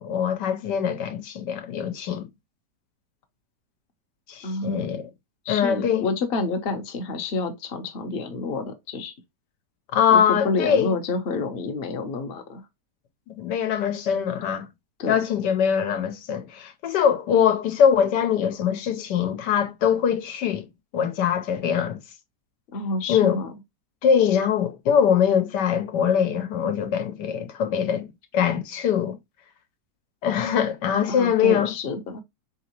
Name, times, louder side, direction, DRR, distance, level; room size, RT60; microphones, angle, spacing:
voice 1, 0.0-2.3 4.3-5.1 5.5-6.1 9.9-10.9 13.3-14.7 15.1-20.7 20.9-22.0 23.1-23.4 24.0-28.1 28.3-29.2 30.2-31.7, left 8 dB, 90° left, 1.4 m, -22 dB
voice 2, 4.4-4.9 5.4-9.1 10.1-12.6 15.0-15.2 22.7-23.5 31.1-32.2, left 3 dB, 45° left, 0.8 m, -28 dB
3.9 x 3.6 x 2.9 m
omnidirectional pair, 1.8 m